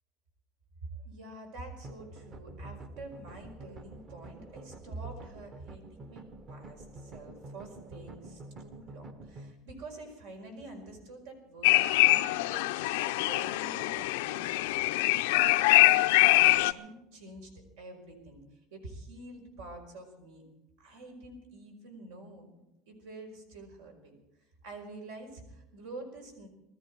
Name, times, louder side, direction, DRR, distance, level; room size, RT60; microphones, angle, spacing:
voice 1, 1.0-17.5 17.8-20.4 20.8-24.1 24.6-26.5, right 2 dB, 85° right, 3 dB, 4.9 m, -47 dB
sound 1, 1.8-9.5, right 2 dB, 30° right, 0.9 m, -48 dB
sound 2, 11.6-16.7, left 19 dB, 80° left, 0.5 m, -24 dB
20.5 x 13.5 x 4.7 m, 0.91 s
cardioid pair, 160°, 0 cm